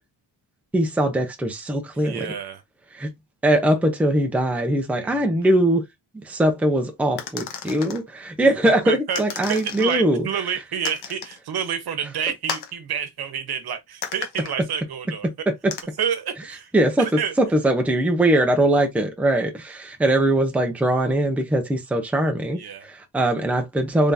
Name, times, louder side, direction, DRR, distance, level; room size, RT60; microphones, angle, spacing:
voice 1, 0.7-2.3 2.9-3.1 3.4-5.8 6.1-10.2 15.6-15.7 16.7-17.1 17.4-24.1, right 1 dB, 5° right, 0.6 m, -21 dB
voice 2, 1.9-2.6 5.0-5.3 8.6-9.2 9.5-15.3 16.0-16.7 17.0-17.3 22.5-22.8, right 7 dB, 60° right, 1.1 m, -29 dB
sound 1, 7.2-8.0 9.1-10.0 10.8-11.4 12.5-12.7 14.0-14.5 15.7-15.8, left 7 dB, 65° left, 1.0 m, -33 dB
3.7 x 3.5 x 2.7 m
wide cardioid pair, 155°, 42 cm